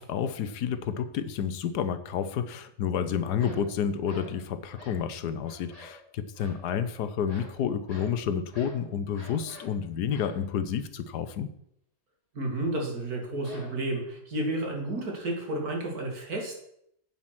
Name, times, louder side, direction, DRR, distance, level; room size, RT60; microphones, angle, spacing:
voice 1, 0.0-11.5, left 8 dB, 80° left, 12 dB, 1.4 m, -30 dB
sound 1, 3.4-3.7 4.0-4.4 4.7-5.1 5.4-6.0 6.3-6.6 7.2-7.6 7.9-8.2 8.5-8.8 9.1-9.8 10.1-10.4 13.4-14.1, left 1 dB, 20° left, 2.5 m, -48 dB
voice 2, 12.3-16.6, right 1 dB, 65° right, 1 dB, 2.8 m, -31 dB
8.6 x 7.4 x 6.0 m, 0.74 s
omnidirectional pair, 1.7 m